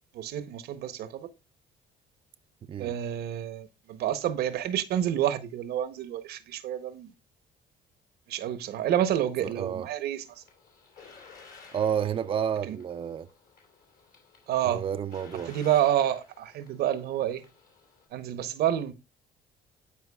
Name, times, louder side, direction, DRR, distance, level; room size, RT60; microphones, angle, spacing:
voice 1, 0.1-1.3 2.8-7.1 8.3-10.4 12.6-12.8 14.5-14.8 15.5-17.4 18.1-18.9, right 11 dB, 70° right, 0.8 m, -29 dB
sound 1, 10.2-18.1, left 4 dB, 65° left, 3.2 m, -54 dB
voice 2, 11.7-13.3 14.7-15.5, right 8 dB, 30° right, 0.4 m, -30 dB
13.0 x 4.6 x 2.3 m
cardioid pair, 110°, 17 cm